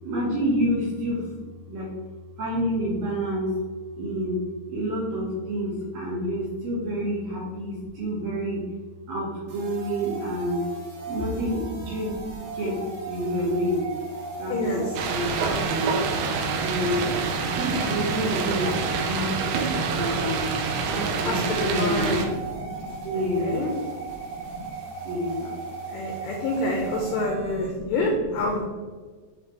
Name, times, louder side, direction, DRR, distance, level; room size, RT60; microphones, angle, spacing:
voice 1, 0.0-1.9 2.4-3.6 3.9-4.4 4.7-8.6 9.1-10.6 11.1-13.9 14.4-14.8 15.1-16.0 16.6-19.4 19.8-20.5 20.9-23.7 24.0-24.7 25.0-25.5 26.0-26.1 26.8-28.6, equal, 65° right, -6 dB, 2.5 m, -29 dB
sound 1, 9.5-27.7, right 5 dB, 50° right, 2.6 m, -37 dB
voice 2, 14.5-14.8 21.2-22.2 23.4-23.7 25.9-28.6, left 2 dB, 85° left, 0 dB, 2.5 m, -27 dB
sound 2, 15.0-22.3, right 5 dB, 85° right, 3.5 m, -27 dB
9.2 x 4.3 x 3.2 m, 1.5 s
omnidirectional pair, 5.9 m